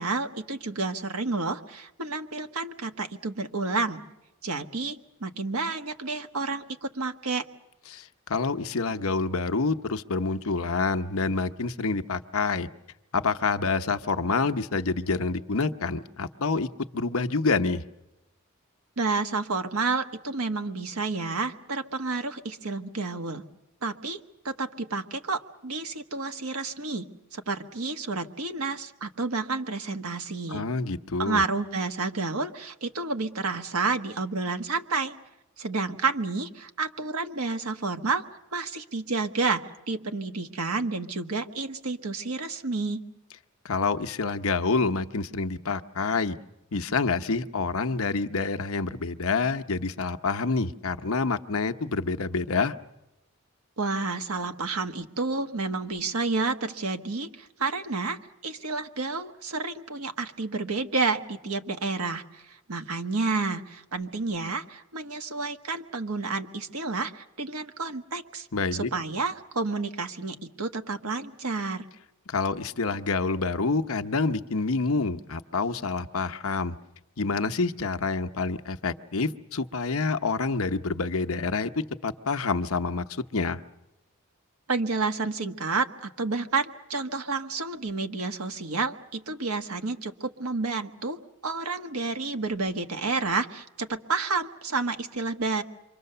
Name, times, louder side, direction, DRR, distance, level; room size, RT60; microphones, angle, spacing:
voice 1, 0.0-4.0 4.4-7.4 19.0-23.4 23.8-30.6 31.2-35.1 35.6-38.2 38.5-43.0 53.8-71.9 84.7-95.6, right 3 dB, 80° right, 6 dB, 1.4 m, -30 dB
voice 2, 7.9-12.7 13.1-17.8 30.5-31.4 43.6-46.4 46.7-52.7 68.5-68.9 72.3-76.8 77.2-81.7 82.0-83.0 83.3-83.6, left 4 dB, 70° left, 9 dB, 0.9 m, -27 dB
27.5 x 24.5 x 6.8 m, 0.94 s
head